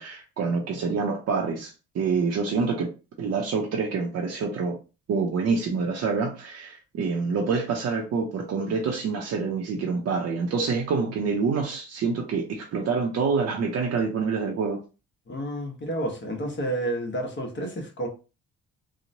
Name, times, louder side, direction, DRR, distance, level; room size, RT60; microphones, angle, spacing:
voice 1, 0.0-2.9 3.2-4.8 5.1-14.8, right 4 dB, 55° right, 0.6 m, -27 dB
voice 2, 15.3-18.1, right 1 dB, 40° left, 1.0 m, -30 dB
2.9 x 2.1 x 2.6 m
cardioid pair, 90°, 30 cm